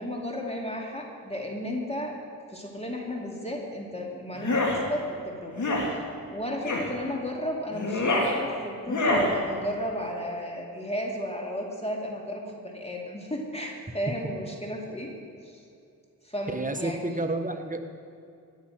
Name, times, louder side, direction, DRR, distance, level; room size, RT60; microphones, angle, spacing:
voice 1, 0.0-2.1 2.5-6.0 6.3-15.1 15.4-15.6 16.2-17.2, equal, 15° left, 0 dB, 2.7 m, -34 dB
sound 1, 4.3-4.8 5.5-5.9 6.6-6.9 7.7-8.3 8.9-9.3, left 2 dB, 55° left, 2.9 m, -25 dB
voice 2, 16.5-17.8, right 2 dB, 20° right, 6 dB, 1.3 m, -30 dB
16.5 x 10.0 x 6.3 m, 2.5 s
cardioid pair, 55°, 35 cm